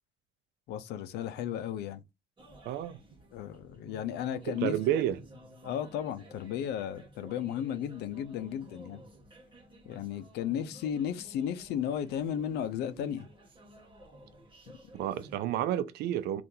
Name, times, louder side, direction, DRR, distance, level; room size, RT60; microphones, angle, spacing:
voice 1, 0.7-2.0 3.3-4.8 5.6-9.0 9.9-13.3, left 9 dB, 80° left, 0.5 m, -34 dB
sound 1, 2.4-15.4, right 1 dB, 30° right, 1.1 m, -54 dB
voice 2, 2.6-3.0 4.5-5.2 14.9-16.4, right 11 dB, 80° right, 0.4 m, -30 dB
2.7 x 2.5 x 3.6 m
cardioid pair, 110°, 17 cm